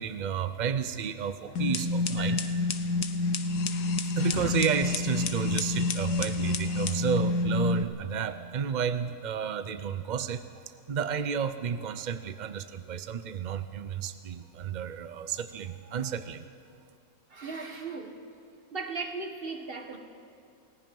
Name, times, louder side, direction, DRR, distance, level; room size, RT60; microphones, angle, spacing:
voice 1, 0.0-2.4 4.2-10.5 10.9-16.4, right 7 dB, 75° right, 11 dB, 0.4 m, -31 dB
sound 1, 1.6-7.8, left 3 dB, 80° left, 1.5 m, -28 dB
voice 2, 2.2-2.5 4.2-4.4 17.3-18.2 18.7-20.0, right 4 dB, 35° right, 4 dB, 1.8 m, -38 dB
29.0 x 18.0 x 5.4 m, 2.4 s
omnidirectional pair, 1.7 m